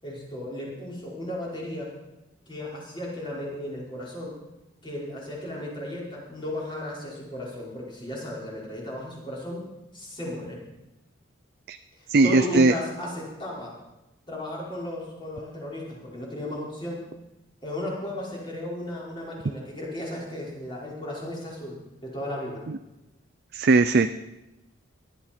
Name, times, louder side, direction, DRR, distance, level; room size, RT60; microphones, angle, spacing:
voice 1, 0.0-1.9 2.5-4.4 4.8-9.6 9.9-10.6 12.0-13.7 14.3-17.0 17.6-22.6, left 1 dB, 25° left, -5 dB, 5.0 m, -35 dB
voice 2, 12.1-12.7 22.7-22.8 23.5-24.1, right 3 dB, 50° right, 9 dB, 0.5 m, -19 dB
19.0 x 12.5 x 4.4 m, 0.98 s
head